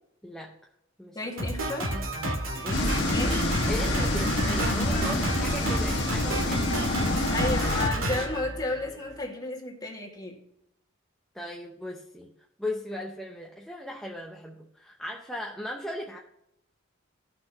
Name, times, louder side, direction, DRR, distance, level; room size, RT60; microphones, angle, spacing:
voice 1, 0.2-0.5 1.0-1.2 3.7-7.2 11.3-12.3 12.6-16.2, left 1 dB, ahead, -1 dB, 0.7 m, -37 dB
voice 2, 1.1-1.9 2.6-3.5 5.3-5.4 7.3-10.4, left 2 dB, 20° left, -2 dB, 2.0 m, -33 dB
Drum kit, 1.4-9.2, right 1 dB, 85° right, 2.2 m, -31 dB
sound 1, 2.7-7.9, left 1 dB, 55° left, 1.6 m, -27 dB
15.5 x 5.8 x 2.9 m, 0.82 s
head